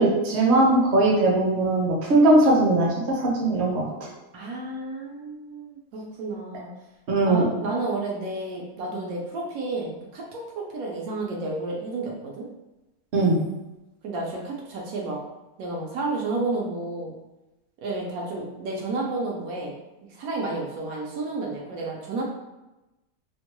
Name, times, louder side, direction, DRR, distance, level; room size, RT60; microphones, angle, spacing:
voice 1, 0.0-2.9 3.2-3.9 7.1-7.4 13.1-13.4, right 2 dB, 55° right, -3 dB, 0.9 m, -19 dB
voice 2, 4.3-6.7 7.2-12.5 14.0-15.2 15.6-17.1 17.8-19.8 20.1-22.2, right 2 dB, 80° right, -2 dB, 1.1 m, -31 dB
2.9 x 2.2 x 2.9 m, 1.0 s
omnidirectional pair, 1.5 m